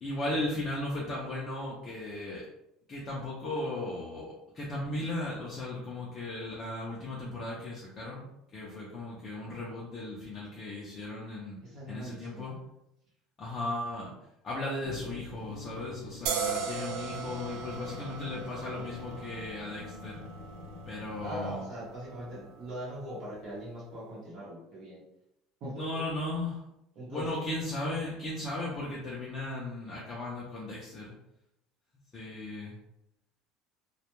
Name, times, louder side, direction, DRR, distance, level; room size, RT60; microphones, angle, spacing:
voice 1, 0.0-2.5 2.9-8.2 8.5-11.6 11.9-12.5 13.4-14.1 14.4-20.2 20.9-21.6 25.8-26.6 27.1-31.1 32.1-32.8, left 2 dB, 25° left, -5 dB, 0.5 m, -36 dB
voice 2, 11.6-12.5 21.2-25.0 25.6-25.8 27.0-27.4, right 1 dB, 45° right, -5 dB, 0.8 m, -41 dB
sound 1, 14.9-21.6, left 3 dB, 85° left, 0.5 m, -46 dB
sound 2, 16.3-23.6, right 6 dB, 75° right, 0.3 m, -39 dB
2.2 x 2.1 x 2.9 m, 0.84 s
cardioid pair, 160°, 0 cm